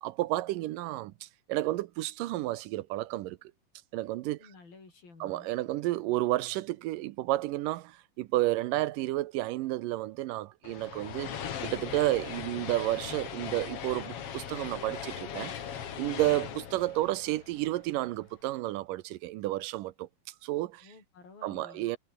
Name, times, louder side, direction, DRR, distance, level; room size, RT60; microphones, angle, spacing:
voice 1, 0.0-3.4 3.9-4.4 5.2-11.3 11.6-15.5 16.0-20.1 20.4-20.9 21.4-22.0, right 16 dB, 75° right, 2.1 m, -31 dB
voice 2, 4.4-5.5 20.8-21.9, left 4 dB, 65° left, 9.8 m, -53 dB
sound 1, 10.6-18.1, left 8 dB, 50° left, 2.1 m, -39 dB
omnidirectional pair, 4.5 m